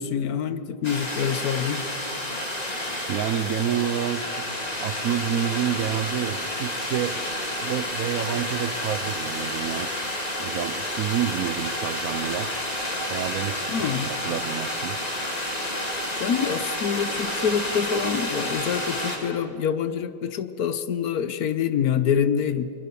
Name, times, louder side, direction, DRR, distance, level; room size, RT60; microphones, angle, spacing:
voice 1, 0.0-1.8 13.7-14.1 16.2-22.7, left 7 dB, 60° left, 12 dB, 1.1 m, -26 dB
sound 1, 0.8-19.2, left 1 dB, 20° left, 2.6 m, -30 dB
voice 2, 3.1-7.2 7.5-9.9 10.4-15.1, right 9 dB, 70° right, 12 dB, 0.8 m, -29 dB
25.0 x 21.5 x 6.9 m, 2.7 s
omnidirectional pair, 2.2 m